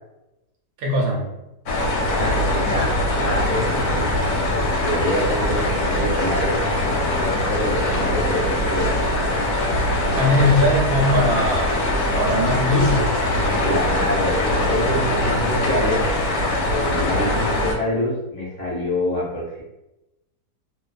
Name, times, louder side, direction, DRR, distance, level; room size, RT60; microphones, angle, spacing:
voice 1, 0.8-1.3 10.2-11.8 12.1-13.0, left 1 dB, 70° right, -1 dB, 1.0 m, -20 dB
sound 1, 1.7-17.7, left 1 dB, 70° left, 1.0 m, -22 dB
voice 2, 2.1-2.9 3.2-4.1 4.5-6.6 6.8-9.0 13.6-16.0 16.7-19.6, equal, 35° left, -7 dB, 0.7 m, -26 dB
2.5 x 2.3 x 2.4 m, 0.95 s
omnidirectional pair, 1.8 m